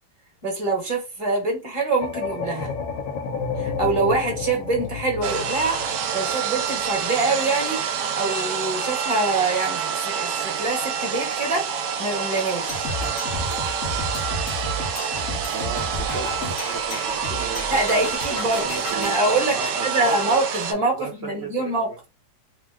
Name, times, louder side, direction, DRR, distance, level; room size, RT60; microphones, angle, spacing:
voice 1, 0.4-2.7 3.6-7.8 8.1-12.9 17.7-18.6 18.9-21.9, right 3 dB, 20° right, 0.9 m, -25 dB
sound 1, 2.0-7.0, left 5 dB, 85° left, 1.3 m, -31 dB
sound 2, 5.2-20.7, right 7 dB, 75° right, 1.2 m, -27 dB
sound 3, 12.7-19.2, left 2 dB, 55° left, 0.8 m, -32 dB
voice 2, 15.5-18.0 18.3-20.4 21.0-22.0, right 3 dB, 55° right, 0.7 m, -35 dB
3.1 x 2.0 x 3.4 m
omnidirectional pair, 1.9 m